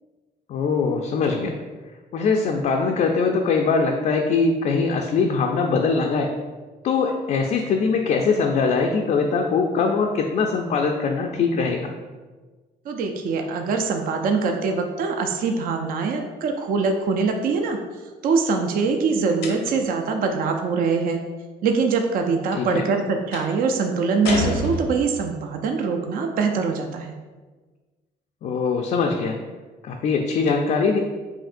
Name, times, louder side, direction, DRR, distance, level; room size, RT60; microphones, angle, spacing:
voice 1, 0.5-1.5 2.1-6.3 6.8-11.9 22.5-22.9 28.4-29.4 29.8-31.0, left 4 dB, 45° left, 2 dB, 0.4 m, -22 dB
voice 2, 12.9-17.8 18.2-21.2 21.6-27.1, right 4 dB, 55° right, 4 dB, 0.5 m, -23 dB
sound 1, 19.4-20.0 23.3-23.6 24.2-25.3, left 2 dB, 85° left, 0.7 m, -28 dB
5.1 x 2.7 x 2.5 m, 1.3 s
cardioid pair, 110°, 17 cm